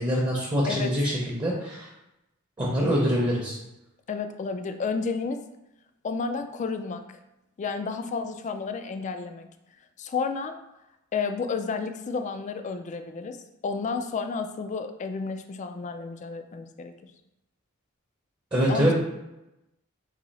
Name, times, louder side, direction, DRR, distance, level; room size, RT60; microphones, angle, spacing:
voice 1, 0.0-1.9 2.6-3.6 18.5-18.9, equal, 20° right, -4 dB, 0.7 m, -24 dB
voice 2, 4.1-5.4 6.0-7.0 7.6-9.5 10.0-10.6 11.1-13.4 13.6-16.9 18.7-18.9, left 4 dB, 35° left, 7 dB, 0.3 m, -31 dB
4.1 x 2.7 x 4.0 m, 0.92 s
head